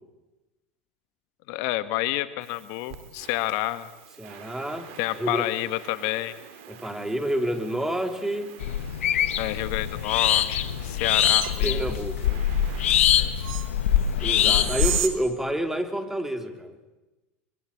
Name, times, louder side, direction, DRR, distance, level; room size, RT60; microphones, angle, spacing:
voice 1, 1.5-3.9 5.0-6.3 9.4-11.9 13.1-13.3, left 17 dB, 65° left, 13 dB, 1.3 m, -29 dB
sound 1, 2.4-15.1, right 10 dB, 70° right, 3.2 m, -39 dB
voice 2, 4.2-5.5 6.7-8.5 11.6-12.4 14.2-16.8, right 1 dB, 5° right, 6 dB, 3.2 m, -29 dB
sound 2, 8.6-15.0, left 10 dB, 80° left, 1.4 m, -23 dB
23.0 x 23.0 x 8.4 m, 1.1 s
hypercardioid pair, 90°, 7 cm